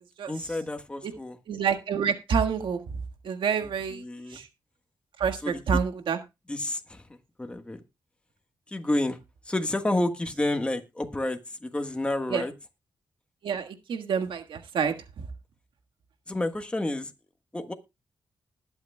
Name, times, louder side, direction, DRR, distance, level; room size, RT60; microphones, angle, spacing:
voice 1, 0.3-1.4 3.9-4.4 5.4-5.8 6.5-7.8 8.7-9.2 9.4-12.5 16.3-17.1 17.5-17.7, left 1 dB, 15° left, 5 dB, 1.4 m, -30 dB
voice 2, 1.5-2.8 3.2-4.0 4.3-4.5 5.2-6.2 12.3-12.4 13.4-14.9, right 6 dB, 90° right, 6 dB, 1.6 m, -27 dB
20.0 x 8.0 x 2.2 m, 0.25 s
wide cardioid pair, 115°, 8 cm